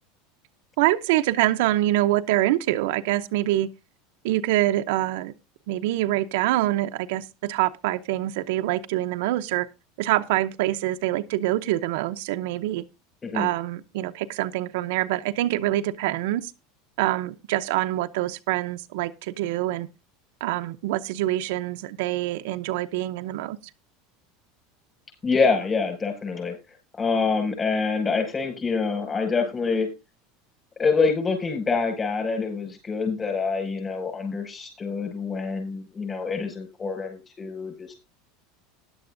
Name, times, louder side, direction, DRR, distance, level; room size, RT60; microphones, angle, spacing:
voice 1, 0.8-3.7 4.2-5.3 5.7-9.7 10.0-12.8 13.3-16.5 17.0-19.9 20.4-23.6, right 15 dB, 75° right, 0.7 m, -25 dB
voice 2, 25.2-26.6 27.0-29.9 30.8-37.9, left 4 dB, 25° left, 5.9 m, -26 dB
16.0 x 11.0 x 2.6 m
supercardioid pair, 125°, 0 cm